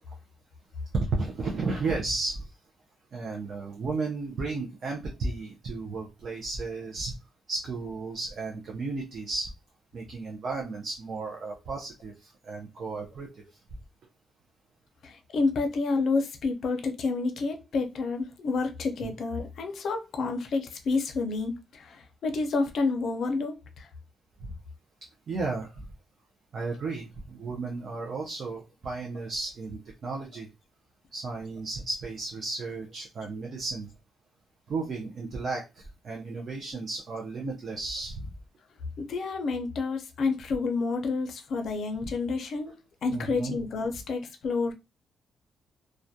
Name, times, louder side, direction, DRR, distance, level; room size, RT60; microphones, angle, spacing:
voice 1, 0.9-2.5 3.1-7.1 7.5-9.5 9.9-13.3 19.0-19.1 24.4-24.5 25.3-25.8 26.5-30.5 31.1-33.9 34.7-38.3 43.1-43.6, right 3 dB, 40° right, 0.5 m, -33 dB
voice 2, 15.0-23.9 39.1-42.8 43.0-44.7, left 4 dB, 55° left, 0.5 m, -29 dB
2.3 x 2.1 x 2.6 m
wide cardioid pair, 180°, 0 cm